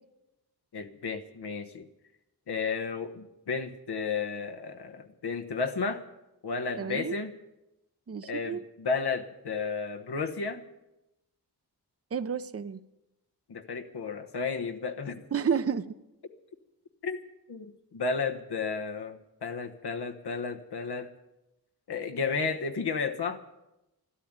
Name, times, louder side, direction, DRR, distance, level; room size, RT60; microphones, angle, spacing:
voice 1, 0.7-1.8 2.5-6.0 6.4-7.3 8.2-10.6 13.5-15.3 17.0-17.2 17.5-21.1 21.9-23.4, left 4 dB, 85° left, 5 dB, 1.2 m, -33 dB
voice 2, 6.8-7.2 8.1-8.6 12.1-12.8 15.3-15.9, right 7 dB, 40° right, 13 dB, 0.7 m, -30 dB
13.0 x 12.0 x 8.9 m, 0.94 s
wide cardioid pair, 65°, 38 cm